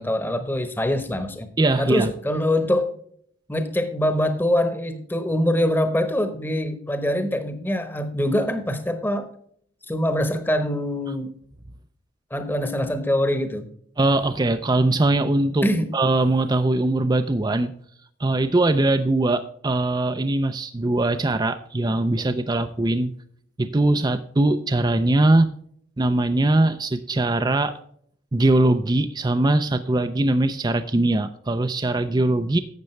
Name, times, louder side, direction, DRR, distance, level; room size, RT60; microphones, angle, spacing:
voice 1, 0.0-1.5 1.8-2.9 3.5-9.3 9.9-11.3 12.3-13.7 15.6-15.9, left 1 dB, 10° left, 8 dB, 1.0 m, -24 dB
voice 2, 1.6-2.1 14.0-15.7 15.9-17.7 18.2-23.1 23.6-25.5 26.0-27.7 28.3-32.6, right 2 dB, 20° right, 9 dB, 0.4 m, -21 dB
12.0 x 8.1 x 3.2 m, 0.62 s
head